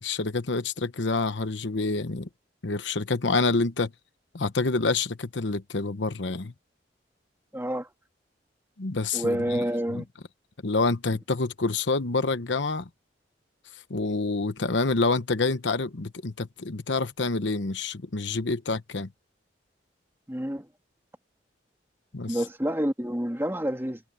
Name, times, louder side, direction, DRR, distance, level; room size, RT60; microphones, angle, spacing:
voice 1, 0.0-2.3 2.6-3.9 4.3-6.5 8.8-9.6 9.9-10.0 10.6-12.9 13.9-19.1 22.1-22.4, left 3 dB, 75° left, 1.0 m, -27 dB
voice 2, 7.5-7.9 9.1-10.1 20.3-20.7 22.3-24.0, equal, 15° right, 2.8 m, -28 dB
head